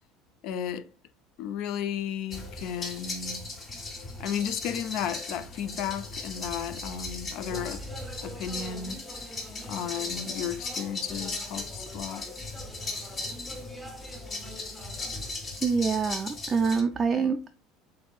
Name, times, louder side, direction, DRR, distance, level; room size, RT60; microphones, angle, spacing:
voice 1, 0.4-0.9 1.4-3.5 4.2-7.8 8.2-9.0 9.6-12.3, left 8 dB, 60° left, 0.5 m, -34 dB
sound 1, 2.3-16.8, left 2 dB, 30° left, 1.2 m, -38 dB
Speech, 7.3-15.5, equal, 5° left, 0.7 m, -46 dB
voice 2, 15.6-17.5, right 5 dB, 20° right, 0.4 m, -26 dB
7.5 x 2.7 x 2.4 m
supercardioid pair, 135°, 0 cm